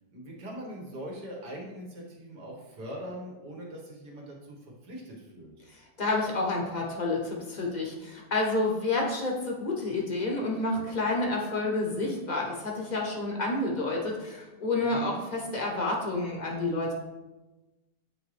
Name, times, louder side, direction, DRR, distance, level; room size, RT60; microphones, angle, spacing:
voice 1, 0.1-4.6 4.8-5.5 14.8-15.3, equal, 75° right, -2 dB, 2.0 m, -41 dB
voice 2, 5.7-16.9, left 2 dB, 35° left, -1 dB, 0.9 m, -29 dB
8.9 x 3.7 x 3.3 m, 1.1 s
omnidirectional pair, 1.8 m